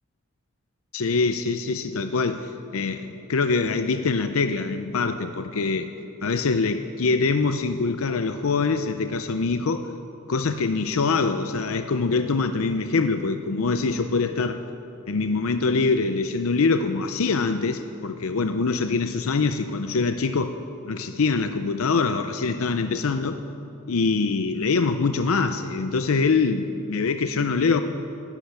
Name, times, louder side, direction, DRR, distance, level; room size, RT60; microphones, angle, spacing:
voice 1, 0.9-5.9 6.2-9.9 10.3-14.6 15.1-20.6 20.8-23.4 23.9-27.8, left 4 dB, 85° left, 8 dB, 0.6 m, -24 dB
13.5 x 11.5 x 8.9 m, 2.8 s
head